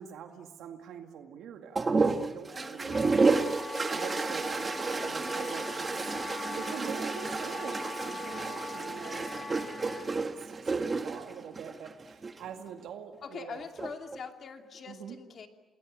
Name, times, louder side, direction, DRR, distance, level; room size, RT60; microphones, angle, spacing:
voice 1, 0.0-3.4 3.9-6.1 6.5-9.3 10.5-13.6 14.9-15.2, right 8 dB, 90° right, 4 dB, 2.1 m, -44 dB
sound 1, 1.7-12.4 13.6-14.2, right 4 dB, 30° right, 1.6 m, -31 dB
Wind instrument woodwind instrument, 2.5-10.1, left 4 dB, 35° left, 3.7 m, -42 dB
voice 2, 13.2-15.5, left 5 dB, 50° left, 4 dB, 2.7 m, -43 dB
29.5 x 20.0 x 8.8 m, 1.2 s
cardioid pair, 130°, 0 cm